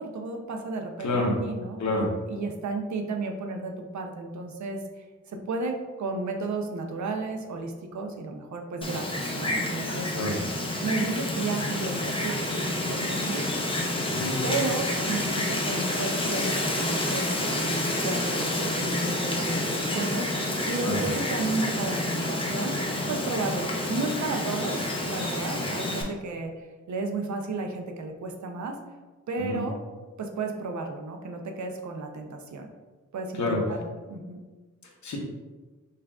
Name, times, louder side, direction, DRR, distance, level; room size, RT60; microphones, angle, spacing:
voice 1, 0.0-1.8 2.3-10.1 10.8-13.5 14.4-22.8 23.1-26.5 26.9-28.8 29.3-29.8 30.2-32.7 33.1-33.8 34.1-34.4, right 3 dB, 70° right, 3 dB, 0.5 m, -33 dB
voice 2, 1.0-1.3 1.8-2.1 10.2-10.4 14.1-14.4 20.8-21.0 29.4-29.6 33.3-33.6 35.0-35.2, left 2 dB, 70° left, -1 dB, 0.8 m, -27 dB
Wind, 8.8-26.0, left 1 dB, 20° left, 0.5 m, -29 dB
5.7 x 2.4 x 2.3 m, 1.3 s
wide cardioid pair, 175°, 29 cm